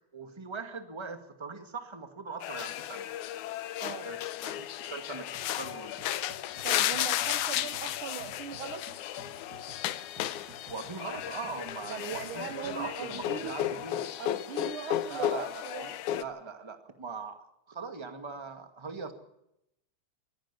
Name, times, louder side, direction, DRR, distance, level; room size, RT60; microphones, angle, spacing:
voice 1, 0.1-3.1 4.0-6.0 10.7-14.1 15.1-17.4 17.7-19.1, right 4 dB, 10° right, 6 dB, 1.5 m, -41 dB
sound 1, 2.4-16.2, left 12 dB, 85° left, 2.3 m, -34 dB
voice 2, 3.8-4.1 6.6-8.9 11.9-13.6 14.2-16.0, right 9 dB, 65° right, 11 dB, 1.4 m, -40 dB
sound 2, 5.3-14.2, right 3 dB, 35° right, 2.5 m, -54 dB
23.5 x 16.0 x 7.0 m, 0.82 s
omnidirectional pair, 3.4 m